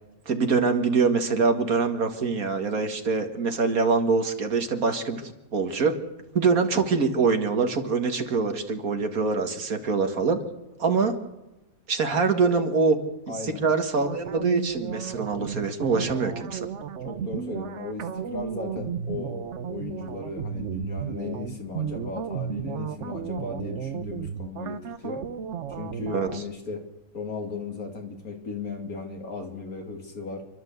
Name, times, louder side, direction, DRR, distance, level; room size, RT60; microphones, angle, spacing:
voice 1, 0.3-5.9 6.3-10.4 10.8-11.2 11.9-13.0 13.4-16.7 26.1-26.4, right 4 dB, 75° right, 6 dB, 2.3 m, -24 dB
voice 2, 13.3-13.6 17.0-19.4 19.7-25.2 25.8-26.8 27.1-30.4, left 4 dB, 80° left, 3 dB, 3.3 m, -36 dB
sound 1, 14.0-26.4, right 7 dB, 55° right, 1.1 m, -33 dB
29.0 x 11.5 x 8.0 m, 0.97 s
omnidirectional pair, 1.5 m